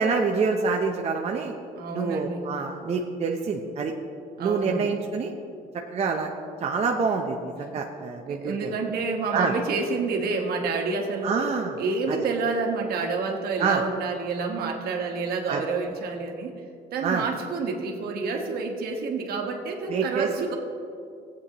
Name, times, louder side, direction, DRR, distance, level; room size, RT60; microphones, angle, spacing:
voice 1, 0.0-1.5 1.9-3.9 4.4-5.3 5.9-6.3 6.6-8.7 9.3-9.5 11.2-11.7 12.1-12.2 13.6-13.8 15.5-15.6 17.0-17.2 19.9-20.3, right 5 dB, 40° right, 1 dB, 0.7 m, -26 dB
voice 2, 1.8-2.4 4.4-5.0 8.3-11.5 11.8-16.5 16.9-20.5, right 4 dB, 65° right, 1 dB, 1.5 m, -28 dB
15.5 x 8.5 x 3.0 m, 2.5 s
cardioid pair, 110°, 17 cm